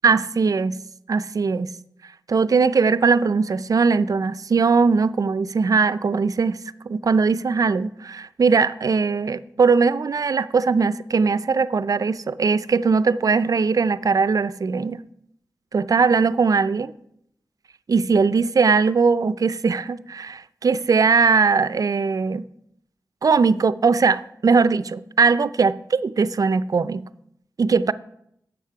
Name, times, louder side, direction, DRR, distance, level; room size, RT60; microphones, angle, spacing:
voice 1, 0.0-0.8 1.1-1.7 2.3-6.6 6.9-15.0 15.7-16.9 17.9-22.4 23.2-27.1 27.6-27.9, right 5 dB, 50° right, 0.4 m, -20 dB
10.0 x 7.0 x 4.8 m
wide cardioid pair, 80°, 8 cm